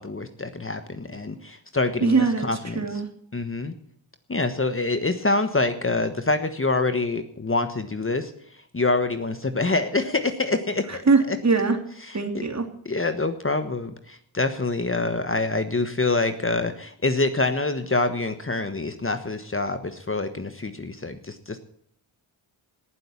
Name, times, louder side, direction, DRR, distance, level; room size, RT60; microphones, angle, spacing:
voice 1, 0.0-3.0 3.3-3.7 4.3-8.3 8.7-11.0 11.3-11.4 12.0-12.4 12.8-21.6, left 3 dB, 25° left, 8 dB, 1.3 m, -26 dB
voice 2, 2.0-2.4 2.7-3.1 11.1-11.8 12.1-12.6, right 4 dB, 35° right, 5 dB, 2.9 m, -21 dB
18.5 x 7.9 x 7.2 m, 0.68 s
cardioid pair, 70°, 48 cm